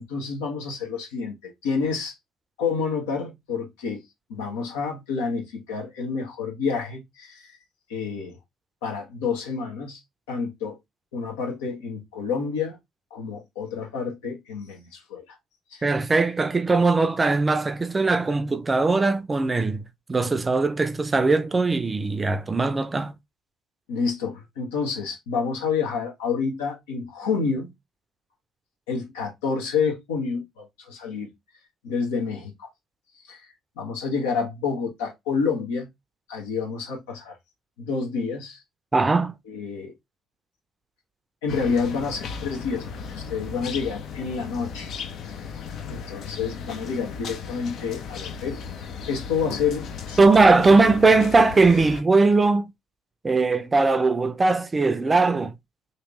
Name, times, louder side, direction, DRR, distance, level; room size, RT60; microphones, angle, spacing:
voice 1, 0.0-2.2 2.6-4.0 4.3-7.6 7.9-8.4 8.8-10.0 10.3-10.8 11.1-12.8 13.1-15.4 15.7-15.8 23.9-27.7 28.9-31.3 31.8-32.7 33.2-33.4 33.8-35.9 36.3-37.4 37.8-38.6 39.5-39.9 41.4-44.9 45.3-45.5 45.9-48.6 49.1-50.3 50.7-51.0, left 5 dB, 75° left, 1.1 m, -29 dB
voice 2, 15.8-19.8 20.1-23.1 38.9-39.3 50.2-52.7 53.2-55.5, right 3 dB, 25° right, 0.5 m, -20 dB
sound 1, 41.5-52.0, left 6 dB, 60° left, 0.6 m, -36 dB
3.1 x 2.8 x 2.9 m
hypercardioid pair, 50°, 0 cm